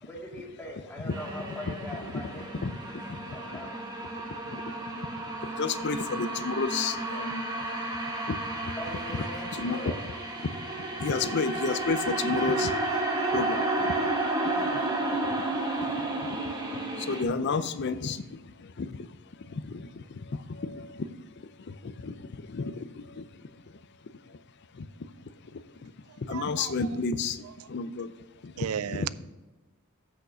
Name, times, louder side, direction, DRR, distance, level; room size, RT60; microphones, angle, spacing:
voice 1, 0.0-2.6 3.3-3.8 8.7-10.0, equal, 10° left, -2 dB, 1.8 m, -41 dB
sound 1, 1.1-17.2, right 2 dB, 20° right, 1.1 m, -32 dB
voice 2, 2.6-3.4 4.5-4.6 5.6-7.5 8.3-8.7 9.6-9.8 10.8-12.9 13.3-13.9 14.4-14.8 15.3-15.4 15.8-16.1 16.4-19.1 19.5-21.2 21.7-23.3 24.7-24.9 25.8-25.9 26.2-28.1 28.4-29.1, left 4 dB, 50° left, 13 dB, 0.5 m, -32 dB
voice 3, 26.3-27.0 28.6-29.1, right 9 dB, 80° right, 17 dB, 0.4 m, -34 dB
8.1 x 6.5 x 5.0 m, 1.2 s
head